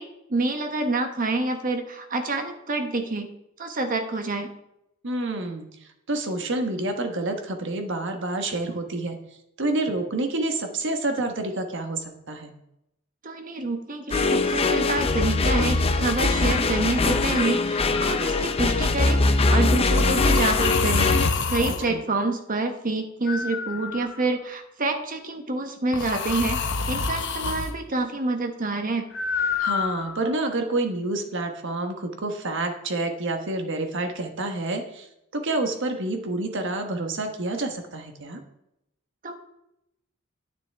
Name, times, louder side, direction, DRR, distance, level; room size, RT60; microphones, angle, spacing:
voice 1, 0.0-3.3 3.6-4.5 13.2-21.1 21.5-29.0 39.2-39.3, right 2 dB, 40° right, 6 dB, 1.2 m, -27 dB
voice 2, 5.0-5.7 6.1-9.2 9.6-12.5 21.6-22.0 29.6-35.1 35.3-38.4, right 2 dB, 65° right, 5 dB, 1.3 m, -28 dB
sound 1, 14.1-21.3, left 3 dB, 30° left, 0.6 m, -22 dB
sound 2, 18.0-18.3 20.0-21.9 23.3-24.4 25.9-27.7 29.1-30.3, left 5 dB, 60° left, 0.8 m, -27 dB
10.5 x 9.2 x 3.5 m, 0.84 s
head